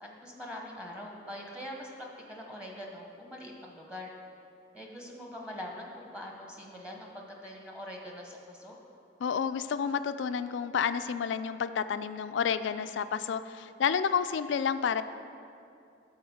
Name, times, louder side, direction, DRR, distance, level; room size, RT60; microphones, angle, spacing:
voice 1, 0.0-4.1 4.7-8.7, left 1 dB, 5° right, 0 dB, 0.9 m, -43 dB
voice 2, 9.2-15.0, left 7 dB, 85° left, 11 dB, 0.4 m, -30 dB
12.0 x 4.1 x 7.1 m, 2.5 s
head